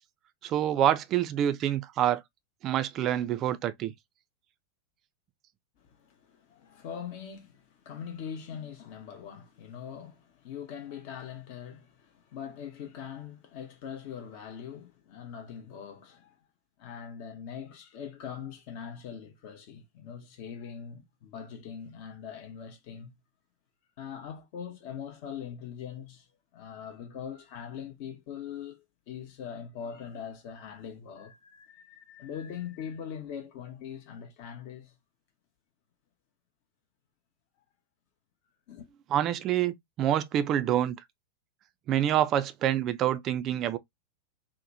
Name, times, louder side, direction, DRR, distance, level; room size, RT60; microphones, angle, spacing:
voice 1, 0.4-2.2 2.6-3.9 39.1-41.0 41.9-43.8, right 11 dB, 35° right, 0.3 m, -27 dB
voice 2, 5.8-16.4 16.8-23.1 24.0-26.3 26.5-34.9 38.7-38.9, left 8 dB, 45° left, 0.6 m, -42 dB
2.9 x 2.1 x 2.5 m
figure-of-eight pair, 90°, 0 cm